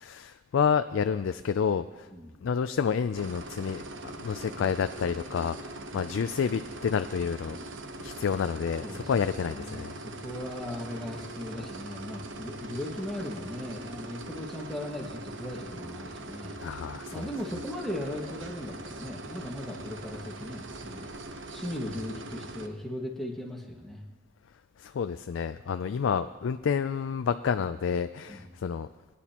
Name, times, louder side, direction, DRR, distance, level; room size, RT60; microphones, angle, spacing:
voice 1, 0.0-2.1 2.4-7.6 8.0-9.9 16.6-17.3 24.8-28.9, left 6 dB, 90° left, 11 dB, 0.4 m, -29 dB
sound 1, 3.1-22.7, right 2 dB, 75° right, 0.9 m, -42 dB
voice 2, 8.8-9.3 9.6-16.6 17.1-21.1 21.5-24.0 28.3-28.5, left 1 dB, ahead, -2 dB, 1.7 m, -38 dB
21.5 x 10.0 x 3.0 m, 1.3 s
head